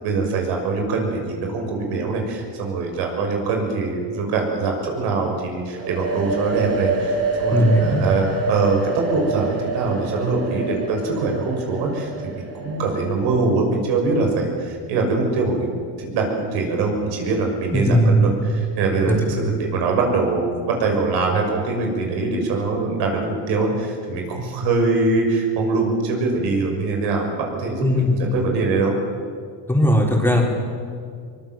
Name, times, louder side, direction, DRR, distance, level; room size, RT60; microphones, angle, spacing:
voice 1, 0.0-12.1 12.3-28.9, right 3 dB, 75° right, 2 dB, 6.4 m, -23 dB
sound 1, 5.8-13.4, right 3 dB, 35° right, 3.9 m, -27 dB
voice 2, 7.5-8.0 17.7-18.3 19.1-19.2 27.8-28.2 29.7-30.4, equal, 5° left, -1 dB, 4.4 m, -18 dB
23.0 x 21.5 x 7.7 m, 2.2 s
cardioid pair, 125°, 41 cm